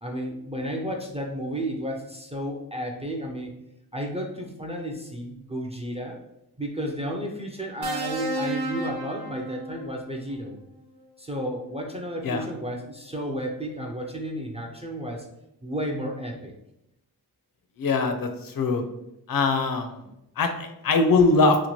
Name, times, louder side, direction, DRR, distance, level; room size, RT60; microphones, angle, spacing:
voice 1, 0.0-3.5 3.9-6.2 6.6-10.6 11.2-15.3 15.6-16.6, equal, 15° right, 1 dB, 0.3 m, -32 dB
sound 1, 7.8-10.1 11.4-11.6, right 1 dB, 65° right, 0.6 m, -32 dB
voice 2, 17.8-18.8 19.3-19.9 20.4-21.6, left 3 dB, 60° left, 6 dB, 0.5 m, -22 dB
2.9 x 2.2 x 2.9 m, 0.86 s
wide cardioid pair, 90°, 39 cm